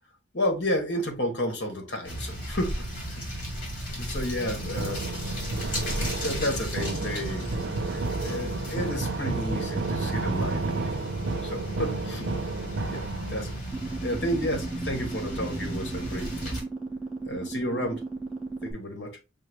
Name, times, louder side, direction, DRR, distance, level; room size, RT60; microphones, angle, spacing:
voice 1, 0.3-3.2 3.8-5.0 5.7-5.8 6.2-7.5 7.9-11.0 11.4-12.3 12.9-13.6 14.0-16.6 17.2-18.0 18.6-19.2, left 1 dB, 65° left, 1.2 m, -32 dB
sound 1, 2.0-16.6, equal, 45° left, 1.9 m, -35 dB
sound 2, 4.4-13.6, right 3 dB, 75° right, 0.5 m, -32 dB
sound 3, 13.7-18.7, right 3 dB, 5° right, 1.0 m, -35 dB
5.6 x 2.0 x 3.2 m
head